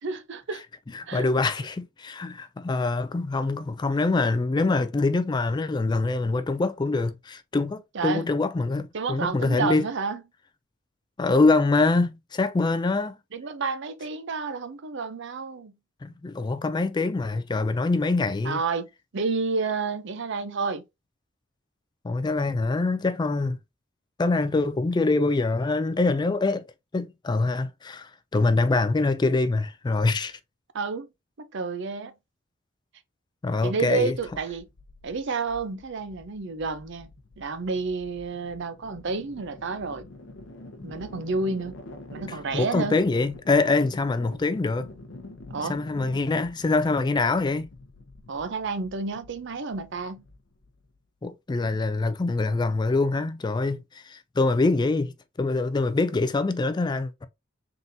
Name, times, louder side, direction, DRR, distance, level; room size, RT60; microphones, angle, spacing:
voice 1, 0.0-0.6 1.1-1.3 7.9-8.3 8.9-10.2 13.3-15.7 18.4-18.9 19.1-20.8 30.7-31.1 31.4-32.1 33.6-34.7 35.0-37.1 37.4-40.1 40.8-41.7 42.1-43.0 45.5-45.8 48.3-50.2, right 4 dB, 60° right, 0.6 m, -30 dB
voice 2, 0.9-9.8 11.2-13.2 16.0-18.6 22.0-23.6 24.2-26.7 26.9-30.4 33.4-34.2 42.3-44.9 45.7-47.7 51.2-57.3, left 3 dB, 20° left, 0.3 m, -24 dB
sound 1, 34.0-51.0, left 2 dB, 65° left, 0.8 m, -46 dB
3.9 x 3.7 x 2.7 m
head